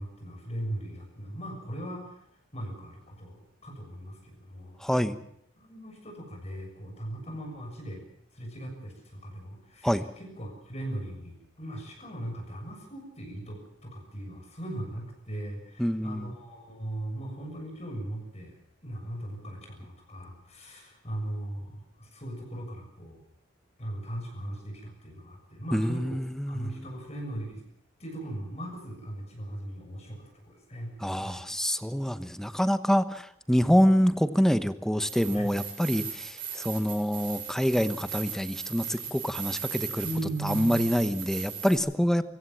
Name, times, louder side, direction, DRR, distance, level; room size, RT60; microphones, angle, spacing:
voice 1, 0.0-2.3 2.5-5.2 5.6-8.0 8.3-18.6 18.8-23.2 23.8-26.2 26.5-27.6 28.0-30.9 31.2-31.4 35.3-35.5 40.0-41.1, right 1 dB, 35° left, 1 dB, 6.8 m, -39 dB
voice 2, 4.8-5.2 9.8-10.0 15.8-16.3 25.7-26.9 31.0-40.1 40.4-42.2, equal, 5° left, 11 dB, 1.1 m, -26 dB
sound 1, 35.0-41.8, right 8 dB, 50° right, 8.0 m, -38 dB
24.5 x 16.0 x 7.5 m, 0.72 s
head